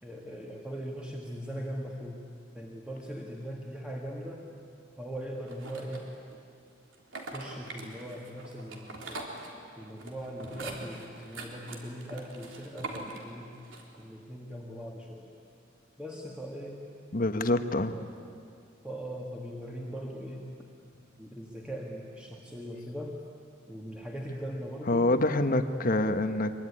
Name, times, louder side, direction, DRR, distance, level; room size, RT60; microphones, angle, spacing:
voice 1, 0.0-2.2 2.5-4.4 5.0-6.0 7.3-9.2 9.8-13.5 14.0-15.3 16.0-16.8 18.8-20.5 21.2-23.2 23.7-25.1 25.7-25.8, equal, 5° right, -2 dB, 2.0 m, -40 dB
sound 1, 5.5-6.4 6.9-14.0, right 2 dB, 70° right, 3.6 m, -43 dB
voice 2, 17.1-17.9 24.9-26.5, left 2 dB, 45° left, 8 dB, 1.2 m, -26 dB
24.5 x 23.5 x 10.0 m, 2.4 s
head